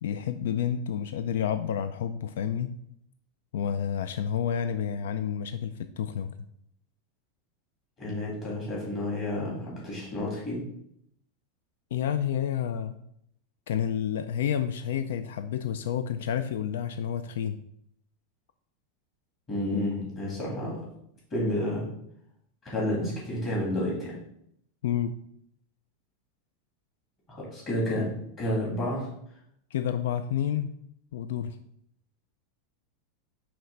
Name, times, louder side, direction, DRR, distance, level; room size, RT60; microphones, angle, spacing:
voice 1, 0.0-2.7 3.5-6.3 11.9-13.0 13.7-17.6 24.8-25.2 29.7-30.7 31.1-31.6, left 9 dB, 75° left, 11 dB, 0.3 m, -29 dB
voice 2, 8.0-10.6 19.5-20.8 21.3-21.9 22.6-24.2 27.3-28.1 28.4-29.1, left 1 dB, 20° left, -5 dB, 2.2 m, -30 dB
5.8 x 3.2 x 5.2 m, 0.72 s
supercardioid pair, 180°, 0 cm